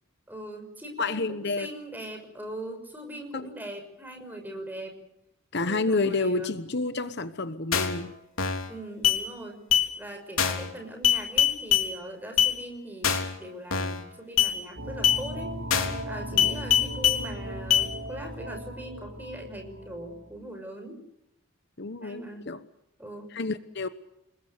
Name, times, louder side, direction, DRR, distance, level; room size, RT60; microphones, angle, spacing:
voice 1, 0.3-5.0 5.6-6.5 8.7-9.6 10.0-15.5 16.0-21.0 22.0-22.5 23.0-23.3, right 1 dB, 10° right, 4 dB, 6.0 m, -40 dB
voice 2, 1.0-1.7 3.3-3.5 5.5-8.1 16.3-16.5 21.8-22.6 23.3-23.9, left 3 dB, 50° left, 11 dB, 1.1 m, -29 dB
sound 1, 7.7-8.0 8.4-8.7 9.0-9.2 9.7-9.9 10.4-10.7 11.0-11.9 12.4-12.5 13.0-13.3 13.7-14.0 14.4-14.5 15.0-15.2 15.7-16.0 16.4-17.2 17.7-17.9, left 9 dB, 75° left, 3.6 m, -23 dB
sound 2, 14.7-20.3, equal, 60° right, 4.7 m, -37 dB
29.0 x 21.0 x 6.7 m, 0.86 s
head